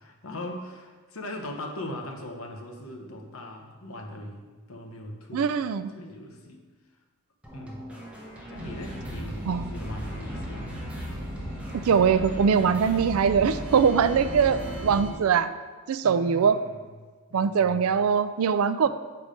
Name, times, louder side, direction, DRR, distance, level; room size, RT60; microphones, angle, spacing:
voice 1, 0.0-5.6 5.9-6.6 7.5-7.9 8.5-10.7 16.0-16.9 17.3-17.9 18.8-18.9, left 1 dB, 70° left, 3 dB, 1.0 m, -40 dB
voice 2, 5.3-5.9 9.5-9.7 11.9-15.5 15.9-16.6 17.3-18.9, right 6 dB, 75° right, 12 dB, 0.4 m, -22 dB
sound 1, 7.4-14.8, equal, 5° right, 1.2 m, -45 dB
sound 2, 8.5-15.1, equal, 55° right, 1.6 m, -36 dB
6.7 x 4.8 x 5.0 m, 1.4 s
head